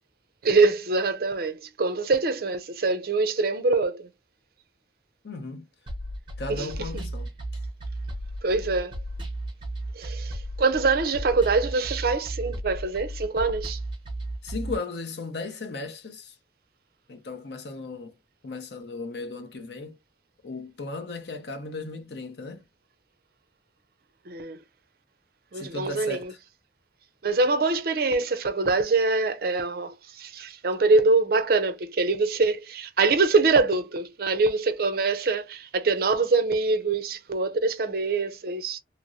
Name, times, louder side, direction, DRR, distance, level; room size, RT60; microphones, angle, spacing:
voice 1, 0.4-4.1 6.5-6.7 8.4-8.9 10.0-13.8 24.3-24.6 25.5-26.3 27.2-38.8, right 3 dB, 55° right, 0.5 m, -24 dB
voice 2, 5.2-5.7 6.4-7.3 14.4-16.3 17.1-18.1 18.4-20.0 20.4-22.6 25.5-26.4, left 3 dB, 65° left, 0.7 m, -36 dB
sound 1, 5.9-14.7, right 1 dB, 25° right, 1.0 m, -34 dB
3.0 x 2.9 x 2.5 m
head